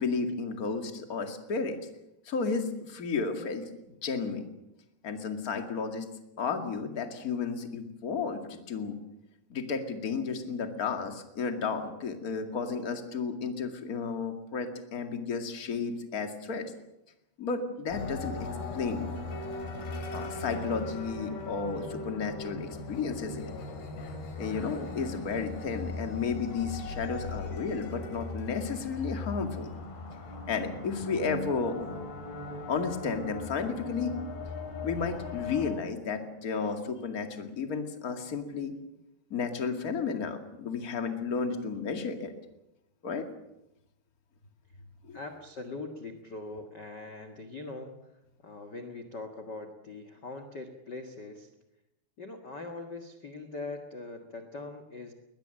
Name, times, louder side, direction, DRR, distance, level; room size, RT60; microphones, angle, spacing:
voice 1, 0.0-1.8 2.3-3.7 4.0-4.5 5.0-6.1 6.4-9.0 9.5-16.7 17.4-18.5 18.7-19.1 20.1-23.5 24.4-29.7 30.5-31.9 32.7-34.1 34.8-38.7 39.3-42.3 43.0-43.2 45.0-45.2, left 5 dB, 30° left, 6 dB, 1.8 m, -33 dB
sound 1, 17.9-35.7, left 3 dB, 75° left, 5.2 m, -39 dB
voice 2, 45.1-48.0 48.4-51.5 52.2-55.1, left 3 dB, 50° left, 5 dB, 1.3 m, -42 dB
21.5 x 20.5 x 7.8 m, 0.89 s
omnidirectional pair, 4.6 m